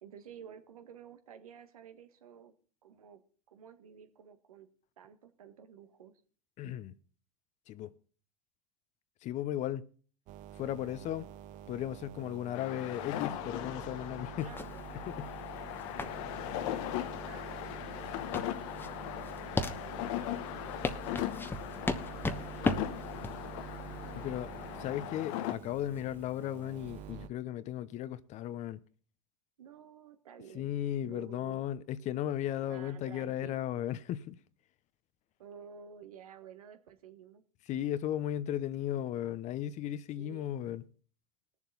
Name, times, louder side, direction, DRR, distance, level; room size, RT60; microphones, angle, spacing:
voice 1, 0.0-2.5 2.8-3.2 3.5-4.7 5.0-6.1 14.4-14.8 16.0-16.1 17.2-17.7 19.8-20.6 29.6-30.8 31.0-31.6 32.6-33.6 35.4-37.4 40.2-40.6, right 8 dB, 80° right, 1.6 m, -52 dB
voice 2, 6.6-6.9 7.7-7.9 9.2-9.9 10.6-11.3 11.7-14.5 15.1-15.3 24.1-24.5 24.8-28.8 30.5-34.4 37.7-40.8, left 11 dB, 40° left, 0.8 m, -36 dB
sound 1, 10.3-27.3, right 10 dB, 45° right, 0.6 m, -48 dB
sound 2, 12.5-25.5, left 13 dB, 60° left, 1.0 m, -39 dB
sound 3, 14.4-27.1, left 2 dB, 10° left, 1.1 m, -38 dB
21.0 x 7.2 x 4.0 m
hypercardioid pair, 95°, 18 cm